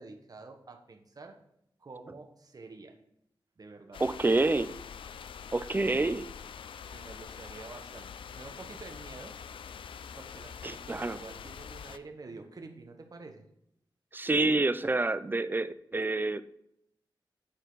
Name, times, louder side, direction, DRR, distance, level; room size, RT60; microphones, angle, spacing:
voice 1, 0.0-1.4 1.8-3.0 3.6-4.0 4.3-4.8 5.8-6.3 6.9-9.4 10.2-13.5, right 3 dB, 45° right, 5 dB, 1.1 m, -48 dB
sound 1, 3.9-12.0, left 7 dB, 85° left, 0.3 m, -45 dB
voice 2, 4.0-4.7 5.5-6.2 10.6-11.2 14.1-16.4, right 2 dB, 25° right, 14 dB, 0.4 m, -27 dB
9.8 x 4.4 x 3.9 m, 0.76 s
wide cardioid pair, 80°, 9 cm